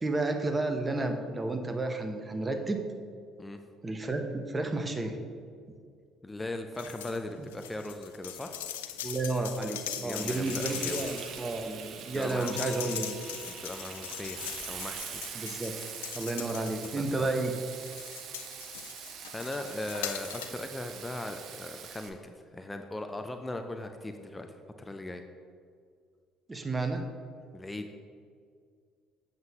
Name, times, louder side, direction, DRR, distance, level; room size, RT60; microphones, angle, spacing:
voice 1, 0.0-2.8 3.8-5.2 9.0-13.2 15.3-15.8 16.1-17.5 26.5-27.1, right 2 dB, 25° right, 5 dB, 0.8 m, -31 dB
voice 2, 6.2-8.5 10.0-11.1 12.1-13.0 13.5-15.2 17.2-17.3 19.3-24.5 24.8-25.2 27.5-27.9, left 2 dB, 15° left, 6 dB, 0.5 m, -39 dB
sound 1, 6.7-7.2 7.5-17.3 17.7-20.6 21.0-21.1, left 11 dB, 80° left, 0.3 m, -41 dB
Frying (food), 10.1-22.1, right 7 dB, 60° right, 0.6 m, -43 dB
sound 2, 12.3-16.5, equal, 60° left, 0.8 m, -55 dB
7.6 x 7.4 x 2.9 m, 2.2 s
hypercardioid pair, 55°, 0 cm